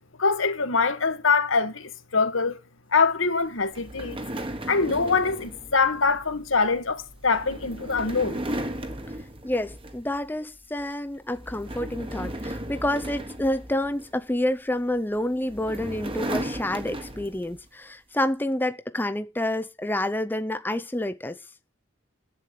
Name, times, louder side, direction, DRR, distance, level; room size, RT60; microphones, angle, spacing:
voice 1, 0.2-2.6 2.9-4.2 4.7-8.4, left 4 dB, 90° left, 1.7 m, -24 dB
sound 1, 3.7-10.3 10.6-10.9 11.3-14.3 15.1-17.6, right 1 dB, 25° right, 1.5 m, -36 dB
voice 2, 9.4-21.4, left 1 dB, 10° left, 0.6 m, -28 dB
11.0 x 8.3 x 8.9 m
head